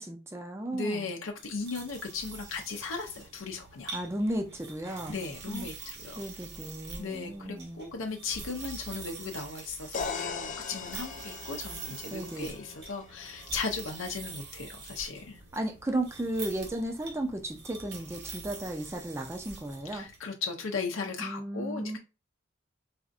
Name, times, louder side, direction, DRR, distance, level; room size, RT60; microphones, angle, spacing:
voice 1, 0.0-1.2 3.9-5.2 5.5-5.6 6.2-7.8 12.1-12.5 15.5-20.1 21.2-22.0, right 1 dB, 15° right, 3 dB, 0.5 m, -34 dB
voice 2, 0.7-4.0 5.1-6.2 7.0-15.4 19.9-22.0, left 4 dB, 85° left, 2 dB, 0.6 m, -37 dB
sound 1, 1.3-20.2, right 4 dB, 55° right, 1.1 m, -45 dB
sound 2, 9.9-13.8, left 5 dB, 40° left, 0.4 m, -39 dB
4.1 x 2.5 x 2.4 m, 0.30 s
head